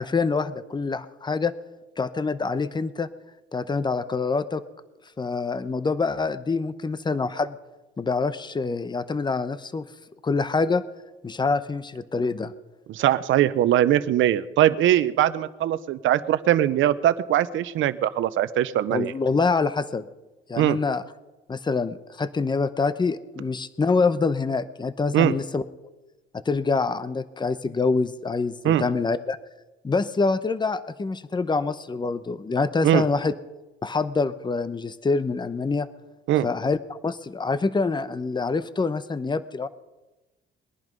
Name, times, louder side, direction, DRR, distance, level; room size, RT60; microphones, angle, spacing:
voice 1, 0.0-1.5 2.0-3.1 3.5-4.6 5.2-7.6 8.0-9.9 10.2-10.8 11.2-12.5 18.9-20.0 20.5-21.0 21.5-25.6 26.3-29.4 29.8-33.3 33.8-35.9 36.4-36.8 37.0-39.7, left 4 dB, 20° left, 14 dB, 0.8 m, -25 dB
voice 2, 12.9-19.1 20.6-20.8 25.1-25.3 28.6-28.8 32.8-33.0 36.3-36.5, right 12 dB, 80° right, 15 dB, 0.8 m, -21 dB
21.0 x 11.0 x 5.3 m, 1.1 s
cardioid pair, 90°, 20 cm